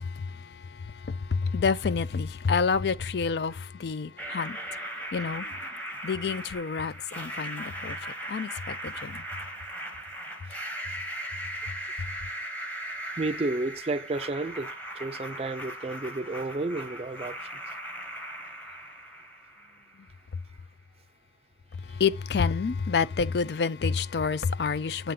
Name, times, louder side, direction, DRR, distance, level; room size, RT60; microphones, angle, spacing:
voice 1, 0.0-5.7 6.0-9.2 12.0-12.1 21.8-25.1, left 5 dB, 70° left, 0.4 m, -29 dB
sound 1, 4.2-20.1, right 1 dB, 10° left, 1.0 m, -38 dB
voice 2, 13.2-14.7 14.9-17.5, right 2 dB, 35° right, 0.4 m, -31 dB
7.8 x 3.4 x 3.7 m
head